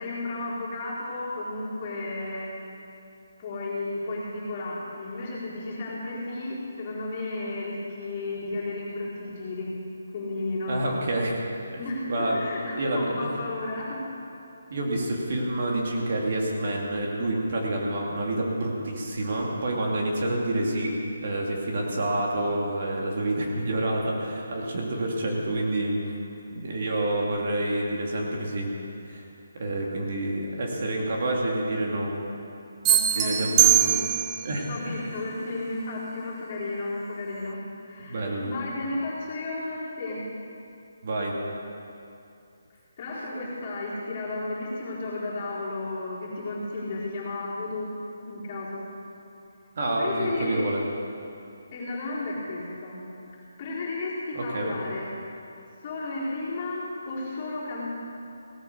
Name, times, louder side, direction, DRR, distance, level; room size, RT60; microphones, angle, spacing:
voice 1, 0.0-2.5 3.4-9.7 10.1-11.0 11.8-14.0 32.9-34.1 34.6-40.2 43.0-47.9 48.2-48.8 50.0-50.7 51.7-53.0 53.6-55.1 55.8-57.9, left 2 dB, 30° left, -7 dB, 4.3 m, -33 dB
voice 2, 10.7-11.3 12.1-12.4 12.7-13.3 14.7-26.2 26.5-28.7 29.1-29.3 29.5-32.1 33.1-33.8 34.4-35.2 38.0-38.5 41.0-41.4 49.8-50.8 54.3-54.8, right 1 dB, 50° right, -2 dB, 2.4 m, -28 dB
sound 1, 32.8-34.5, right 12 dB, 15° right, 0.6 m, -21 dB
17.5 x 8.8 x 6.7 m, 2.7 s
hypercardioid pair, 165°, 0 cm